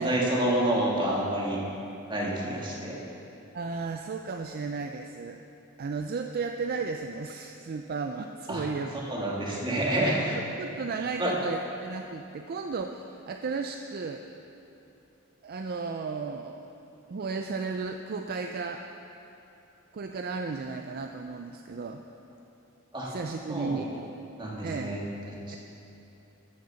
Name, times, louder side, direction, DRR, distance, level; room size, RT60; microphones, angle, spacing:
voice 1, 0.0-1.6 2.1-3.0 8.5-8.6 8.9-10.4 11.2-11.3 22.9-23.1 23.5-23.8 24.4-25.6, right 1 dB, 20° right, -3 dB, 1.9 m, -28 dB
voice 2, 3.5-5.4 5.8-9.1 10.0-14.2 15.4-16.7 17.1-18.8 19.9-22.0 23.0-24.1 24.6-24.9, right 4 dB, 45° right, 5 dB, 0.4 m, -34 dB
13.0 x 6.7 x 6.9 m, 2.9 s
head